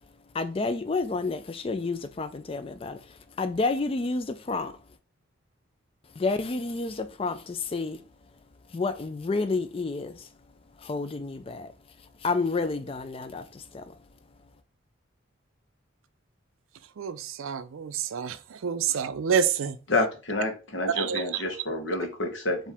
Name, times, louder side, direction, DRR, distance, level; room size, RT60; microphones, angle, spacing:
voice 1, 0.4-3.0 3.4-4.7 6.2-8.0 8.7-10.1 10.9-11.7 12.2-13.4, left 3 dB, 25° left, 0.3 m, -29 dB
voice 2, 17.4-18.3 18.6-19.7 21.0-21.2, right 7 dB, 75° right, 0.4 m, -27 dB
voice 3, 19.9-22.6, left 2 dB, 65° left, 1.1 m, -28 dB
4.6 x 2.7 x 3.5 m
head